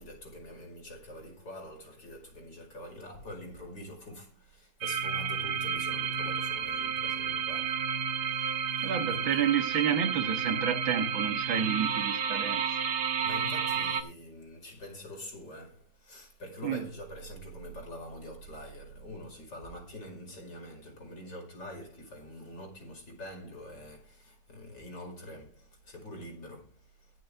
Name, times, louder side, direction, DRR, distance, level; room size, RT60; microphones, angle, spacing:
voice 1, 0.0-9.4 13.2-27.2, left 1 dB, 60° left, 5.8 m, -45 dB
sound 1, 4.8-14.0, right 7 dB, 60° right, 1.9 m, -31 dB
voice 2, 8.8-12.6 16.6-16.9, right 8 dB, 85° right, 2.3 m, -30 dB
22.5 x 7.6 x 3.5 m
omnidirectional pair, 2.1 m